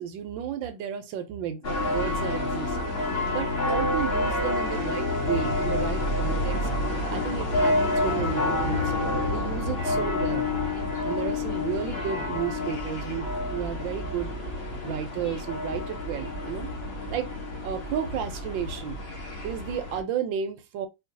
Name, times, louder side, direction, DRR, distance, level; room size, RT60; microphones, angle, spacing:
voice 1, 0.0-2.8 3.3-6.6 7.1-10.5 11.0-14.3 14.8-16.7 17.1-17.3 17.6-19.0 19.4-20.9, right 8 dB, 70° right, 1.3 m, -33 dB
sound 1, 1.6-20.0, left 2 dB, 40° left, 1.1 m, -28 dB
4.5 x 2.7 x 2.6 m
omnidirectional pair, 2.3 m